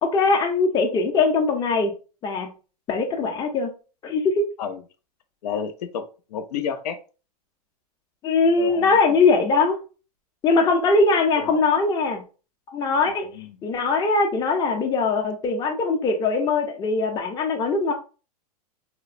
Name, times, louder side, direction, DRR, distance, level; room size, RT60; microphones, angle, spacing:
voice 1, 0.0-1.9 2.2-2.5 2.9-3.7 4.0-4.4 8.2-9.8 10.4-12.2 12.7-13.3 13.6-17.9, left 4 dB, 20° left, 3 dB, 0.5 m, -21 dB
voice 2, 5.4-7.0 8.6-8.9 11.4-11.6 13.3-13.5, left 7 dB, 85° left, 8 dB, 0.5 m, -30 dB
2.8 x 2.0 x 2.5 m, 0.35 s
supercardioid pair, 135°, 20 cm